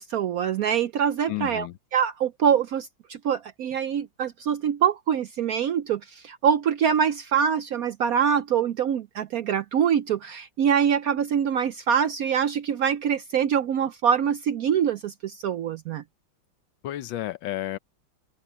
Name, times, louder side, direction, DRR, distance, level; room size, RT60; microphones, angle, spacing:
voice 1, 0.0-1.7 1.9-16.0, right 8 dB, 75° right, 0.8 m, -24 dB
voice 2, 1.3-1.8 16.8-17.8, left 15 dB, 75° left, 1.4 m, -31 dB
omnidirectional pair, 2.2 m